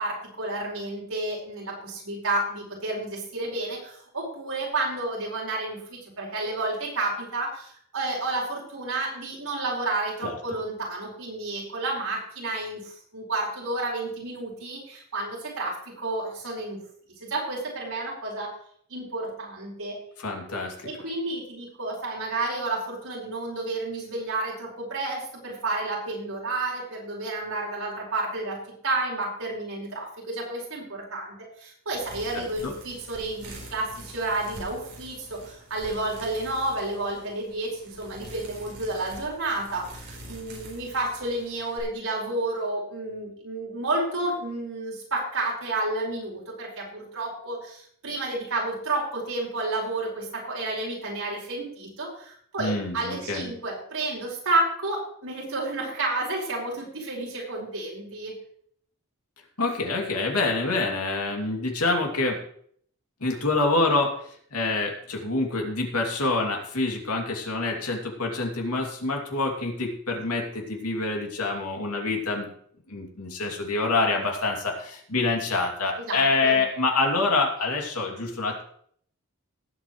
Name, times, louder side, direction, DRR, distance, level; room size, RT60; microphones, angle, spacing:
voice 1, 0.0-16.8 17.2-18.5 18.9-20.0 20.8-28.6 28.8-58.3 76.0-76.6, right 2 dB, 75° right, -4 dB, 4.9 m, -31 dB
voice 2, 20.2-20.9 32.3-32.7 52.6-53.5 59.6-62.4 63.2-64.2 64.5-72.5 72.9-78.6, left 3 dB, 85° left, 1 dB, 2.7 m, -26 dB
sound 1, 31.9-41.8, right 1 dB, 50° right, 4.3 m, -45 dB
18.5 x 8.4 x 3.2 m, 0.63 s
head